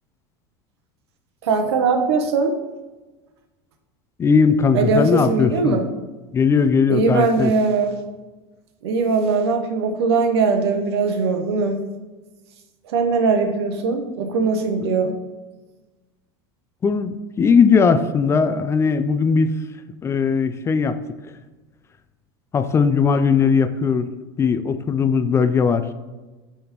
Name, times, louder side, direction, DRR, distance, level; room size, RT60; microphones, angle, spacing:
voice 1, 1.4-2.5 4.7-5.9 6.9-8.0 8.8-11.8 12.8-15.1, right 4 dB, 85° right, 6 dB, 0.9 m, -20 dB
voice 2, 4.2-5.8 6.3-7.5 16.8-19.5 20.0-21.0 22.5-24.1 24.4-25.9, left 5 dB, 20° left, 11 dB, 0.3 m, -18 dB
9.2 x 3.6 x 2.9 m, 1.2 s
supercardioid pair, 120°, 13 cm